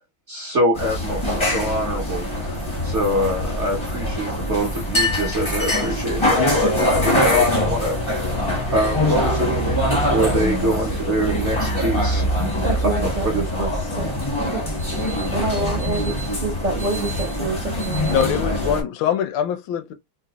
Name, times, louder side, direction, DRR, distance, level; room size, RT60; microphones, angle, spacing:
voice 1, 0.3-8.0 8.7-12.3 13.0-13.4, right 1 dB, 55° right, 0.8 m, -24 dB
sound 1, 0.8-18.8, left 1 dB, 30° left, 0.5 m, -23 dB
voice 2, 12.6-14.1 14.4-14.6 14.9-18.3, right 3 dB, 80° right, 0.4 m, -28 dB
voice 3, 18.1-19.9, left 9 dB, 80° left, 1.3 m, -23 dB
3.8 x 2.1 x 2.8 m
omnidirectional pair, 2.1 m